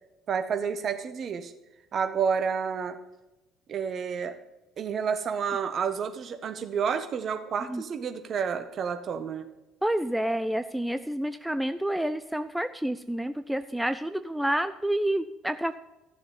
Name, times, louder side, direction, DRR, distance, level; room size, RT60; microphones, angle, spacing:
voice 1, 0.3-1.5 1.9-3.0 3.7-4.4 4.8-9.5, right 6 dB, 40° right, 9 dB, 1.1 m, -30 dB
voice 2, 9.8-15.8, right 1 dB, 5° right, 11 dB, 0.5 m, -29 dB
14.5 x 7.0 x 5.3 m, 1.0 s
figure-of-eight pair, 55°, 0 cm